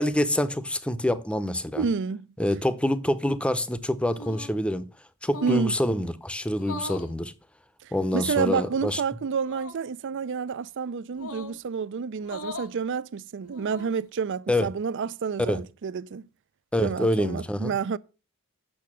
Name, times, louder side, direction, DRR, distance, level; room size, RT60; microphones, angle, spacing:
voice 1, 0.0-1.9 2.4-4.9 5.2-7.3 7.9-9.0 14.5-14.7 15.4-15.6 16.7-17.7, left 1 dB, 5° left, 0.6 m, -26 dB
voice 2, 1.8-2.3 5.4-5.7 7.8-16.2 16.8-18.0, right 6 dB, 60° right, 0.4 m, -29 dB
sound 1, 4.1-4.6 5.2-5.7 6.6-7.1 8.1-8.6 9.4-9.8 11.1-11.6 12.2-12.7 13.4-14.0, left 2 dB, 80° left, 1.7 m, -40 dB
8.7 x 6.6 x 6.1 m
head